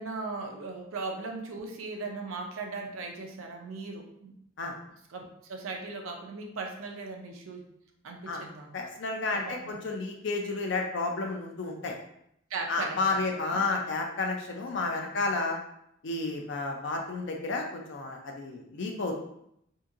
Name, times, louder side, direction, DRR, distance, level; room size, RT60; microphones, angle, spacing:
voice 1, 0.0-4.3 5.1-7.7 8.0-8.7 9.3-9.8 12.5-13.6 14.8-15.2, right 3 dB, 80° right, 2 dB, 0.5 m, -38 dB
voice 2, 8.7-11.9 12.7-15.6 16.0-19.1, left 3 dB, 60° left, 2 dB, 0.5 m, -31 dB
2.8 x 2.6 x 2.4 m, 0.75 s
head